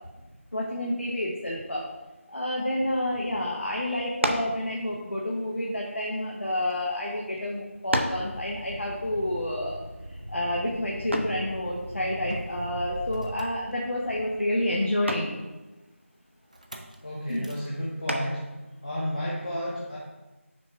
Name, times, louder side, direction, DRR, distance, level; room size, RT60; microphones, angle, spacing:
voice 1, 0.5-1.9 2.3-9.8 10.1-15.4 17.3-17.5, left 1 dB, 55° left, -3 dB, 1.1 m, -29 dB
sound 1, 4.2-4.6 5.5-6.7 7.4-7.5 7.9-8.3 11.1-11.5 13.4-13.7 14.1-14.5 15.1-15.4 18.1-18.5, right 1 dB, 60° right, 0.8 m, -30 dB
Motor vehicle (road), 7.9-14.3 16.5-17.0 17.3-17.7, right 1 dB, 30° right, 0.5 m, -40 dB
voice 2, 17.0-18.5 18.8-20.0, equal, 35° left, -6 dB, 1.0 m, -32 dB
6.0 x 4.6 x 4.6 m, 1.1 s
figure-of-eight pair, 175°, 7 cm